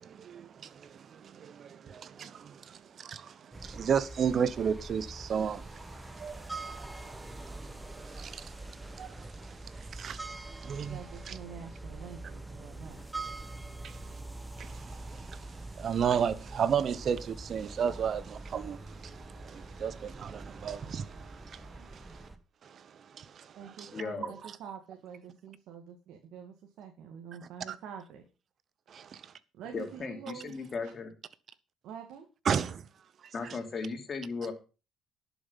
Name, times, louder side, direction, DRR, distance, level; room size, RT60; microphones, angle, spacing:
voice 1, 0.0-8.6 8.9-11.4 13.8-14.0 14.6-22.3 22.6-24.0 27.7-27.8 28.9-29.3 32.4-32.8, right 7 dB, 50° right, 1.0 m, -34 dB
sound 1, 3.5-22.4, right 2 dB, 10° right, 1.5 m, -44 dB
voice 2, 10.8-13.0 21.8-21.9 23.6-28.2 29.5-30.6 31.8-32.3, right 7 dB, 75° right, 2.0 m, -46 dB
voice 3, 23.9-24.3 29.7-31.1 33.3-34.5, left 4 dB, 40° left, 3.1 m, -36 dB
11.5 x 7.1 x 5.7 m
cardioid pair, 90°, 0 cm